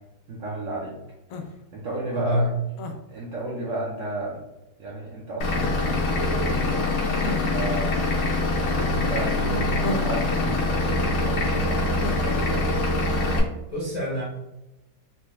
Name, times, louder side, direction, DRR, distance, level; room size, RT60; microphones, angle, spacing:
voice 1, 0.3-0.9 1.7-2.5 3.1-4.4 4.8-7.0 7.3-7.9 8.6-12.8, right 2 dB, 60° right, -5 dB, 0.8 m, -32 dB
sound 1, 1.3-1.5 2.8-3.0 5.6-5.8 7.2-7.4 9.8-10.2 12.0-12.2, left 3 dB, 85° left, 0.7 m, -31 dB
voice 2, 2.1-2.5 13.7-14.2, left 1 dB, 35° left, -6 dB, 0.6 m, -26 dB
Vehicle / Engine, 5.4-13.4, left 2 dB, 70° left, 1.5 m, -24 dB
4.2 x 2.2 x 3.1 m, 0.92 s
omnidirectional pair, 2.0 m